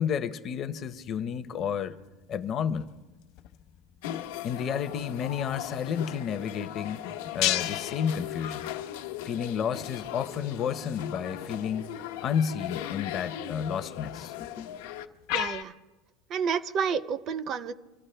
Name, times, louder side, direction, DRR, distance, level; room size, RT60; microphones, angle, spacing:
voice 1, 0.0-2.0 2.3-2.9 4.4-7.0 7.3-8.7 9.2-11.9 12.2-14.7, left 7 dB, 30° left, 0.6 m, -31 dB
sound 1, 0.8-15.6, left 13 dB, 50° left, 0.9 m, -39 dB
sound 2, 4.0-15.1, left 12 dB, 85° left, 1.0 m, -38 dB
voice 2, 15.3-15.7 16.3-17.7, right 6 dB, 30° right, 0.5 m, -30 dB
26.5 x 14.0 x 3.3 m
cardioid pair, 175°, 0 cm